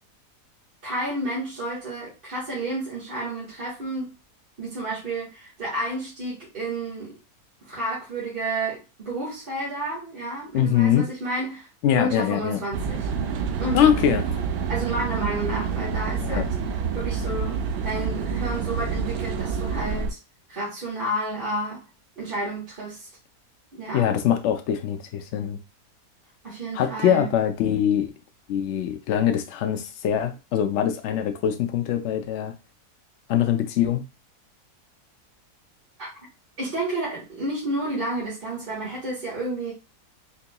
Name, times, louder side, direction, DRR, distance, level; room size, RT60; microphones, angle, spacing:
voice 1, 0.8-4.1 4.6-7.1 7.6-11.7 11.9-13.1 13.6-14.1 14.7-16.5 16.9-20.2 20.5-21.8 22.2-23.1 23.7-24.1 26.4-27.3 36.0-36.1 36.6-39.7, right 1 dB, 35° right, 1.7 m, -31 dB
voice 2, 10.5-11.0 11.8-12.6 13.7-14.2 16.2-16.4 23.9-25.6 26.7-28.1 28.5-32.5 33.3-34.0, left 9 dB, 80° left, 0.6 m, -23 dB
sound 1, 12.7-20.1, right 6 dB, 85° right, 1.2 m, -28 dB
4.5 x 2.9 x 2.2 m
omnidirectional pair, 1.8 m